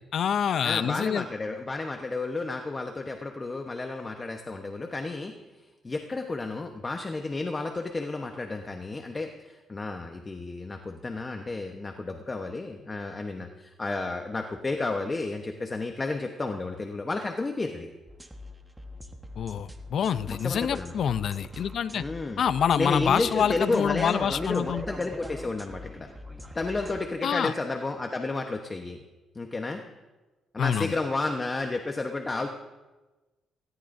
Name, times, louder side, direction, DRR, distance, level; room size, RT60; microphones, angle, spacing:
voice 1, 0.1-1.2 19.4-22.0 22.4-24.8 27.2-27.5 30.6-30.9, left 8 dB, 60° left, 14 dB, 0.6 m, -26 dB
voice 2, 0.6-5.3 5.8-17.9 20.3-20.9 21.9-22.4 22.7-26.1 26.5-29.0 29.3-29.8 30.5-32.5, left 3 dB, 25° left, 4 dB, 1.1 m, -32 dB
sound 1, 18.1-27.1, left 1 dB, 10° right, 1.4 m, -42 dB
19.0 x 17.5 x 2.7 m, 1.2 s
cardioid pair, 90°, 0 cm